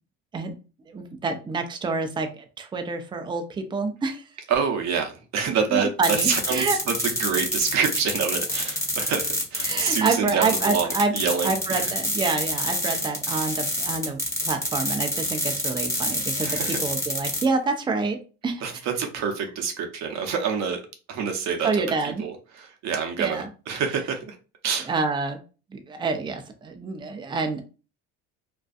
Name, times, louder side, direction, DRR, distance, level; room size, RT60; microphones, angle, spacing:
voice 1, 0.9-4.2 5.7-6.8 9.6-11.1 11.4-14.2 14.5-18.6 21.6-22.2 23.2-23.5 24.9-25.4 25.7-27.6, right 4 dB, 15° right, 0.4 m, -27 dB
voice 2, 4.5-10.9 11.1-11.9 16.4-16.8 18.6-18.7 19.0-20.8 21.1-24.3 24.6-24.9, right 6 dB, 55° right, 0.7 m, -27 dB
sound 1, 6.0-17.4, left 1 dB, 10° left, 1.0 m, -27 dB
2.5 x 2.3 x 2.3 m
supercardioid pair, 90°, 33 cm